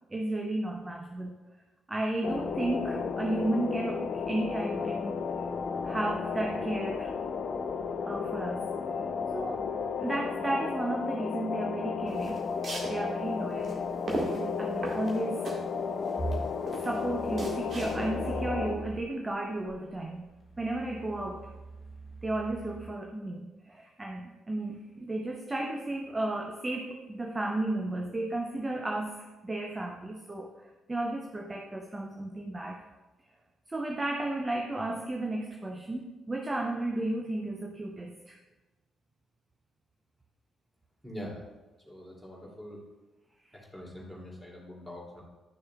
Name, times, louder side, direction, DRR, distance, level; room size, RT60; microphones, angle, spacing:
voice 1, 0.1-1.4 1.9-5.5 5.8-7.1 8.1-9.0 9.3-9.7 10.0-12.5 12.9-15.5 16.8-20.3 20.6-21.5 22.2-30.5 30.9-32.8 33.7-38.4, right 1 dB, 20° right, 1 dB, 0.7 m, -33 dB
sound 1, 2.2-18.8, left 5 dB, 45° left, 0.4 m, -33 dB
sound 2, 12.1-18.3, right 1 dB, 40° right, 1.7 m, -37 dB
sound 3, 16.2-19.1 19.7-22.9, right 2 dB, 25° left, 1.4 m, -41 dB
voice 2, 41.0-41.4 41.9-42.8 43.5-45.2, equal, 5° right, -3 dB, 2.7 m, -43 dB
11.0 x 6.4 x 2.3 m, 1.1 s
figure-of-eight pair, 45°, 0 cm